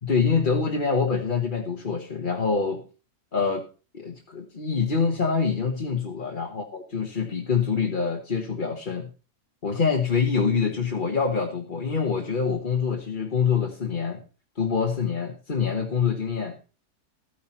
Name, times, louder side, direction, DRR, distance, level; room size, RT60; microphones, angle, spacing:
voice 1, 0.0-2.8 3.3-3.7 3.9-9.1 9.6-14.2 14.6-16.6, left 5 dB, 35° left, 2 dB, 1.4 m, -25 dB
14.5 x 9.6 x 4.3 m, 0.34 s
omnidirectional pair, 1.6 m